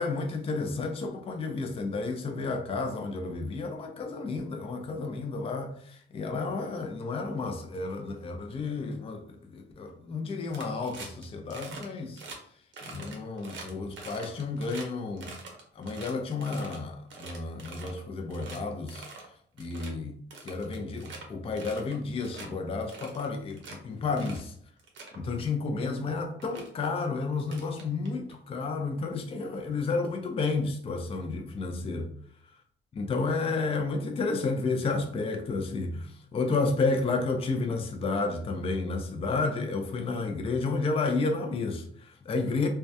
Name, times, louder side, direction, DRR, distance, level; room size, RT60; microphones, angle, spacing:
voice 1, 0.0-12.2 12.8-15.3 15.7-19.1 19.6-20.1 20.4-24.6 25.1-32.1 32.4-32.5 32.9-42.7, left 3 dB, 30° left, 0.4 m, -31 dB
sound 1, 10.5-11.2 11.5-11.9 12.2-12.4 12.7-14.9 15.2-16.8 17.1-18.0 18.3-18.6 18.9-19.3 19.6-19.9 20.3-21.2 21.6-22.0 22.2-22.5 22.9-23.8 24.2-24.4 24.8-25.2 26.0-26.1 26.4-26.7 27.4-28.3, right 4 dB, 70° right, 0.7 m, -44 dB
2.2 x 2.1 x 2.7 m
cardioid pair, 90°, 20 cm